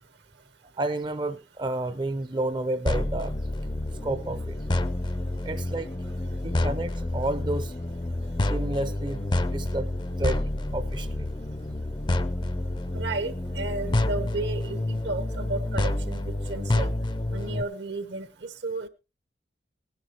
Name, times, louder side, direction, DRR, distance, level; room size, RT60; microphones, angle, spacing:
voice 1, 0.8-3.3 4.0-4.6 5.4-5.9 6.4-7.7 8.5-9.2 9.5-9.9 10.2-10.4 10.7-11.3, right 2 dB, 25° right, 0.5 m, -30 dB
sound 1, 2.9-17.6, left 1 dB, 25° left, 0.5 m, -28 dB
voice 2, 12.9-16.9 17.3-18.9, right 3 dB, 70° right, 1.1 m, -33 dB
18.5 x 10.5 x 3.0 m
head